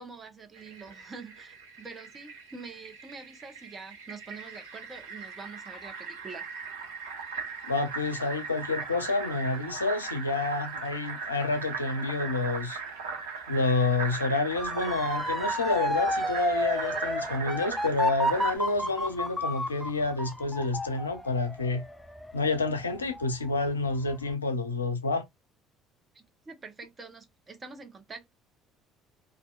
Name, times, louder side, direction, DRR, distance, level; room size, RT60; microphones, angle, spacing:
voice 1, 0.0-6.5 26.1-28.3, right 4 dB, 30° right, 0.9 m, -45 dB
Fill (with liquid), 0.5-18.6, right 5 dB, 75° right, 0.9 m, -39 dB
voice 2, 7.6-12.8 13.5-21.8 22.3-25.3, left 3 dB, 90° left, 0.4 m, -29 dB
Motor vehicle (road) / Siren, 14.6-23.5 23.9-24.3, left 1 dB, 5° left, 0.4 m, -31 dB
2.7 x 2.4 x 2.3 m
figure-of-eight pair, 55°, 0 cm